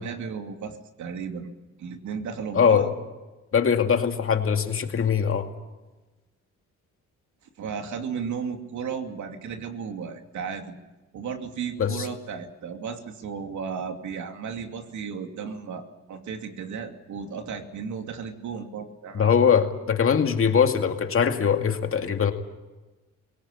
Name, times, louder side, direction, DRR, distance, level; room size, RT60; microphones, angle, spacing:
voice 1, 0.0-1.5 1.8-2.9 7.6-10.8 11.1-19.4, right 6 dB, 70° right, 5 dB, 2.8 m, -34 dB
voice 2, 2.5-2.9 3.5-5.5 11.8-12.1 19.1-22.3, left 7 dB, 45° left, 5 dB, 2.3 m, -22 dB
23.5 x 18.0 x 8.6 m, 1.2 s
cardioid pair, 90°, 30 cm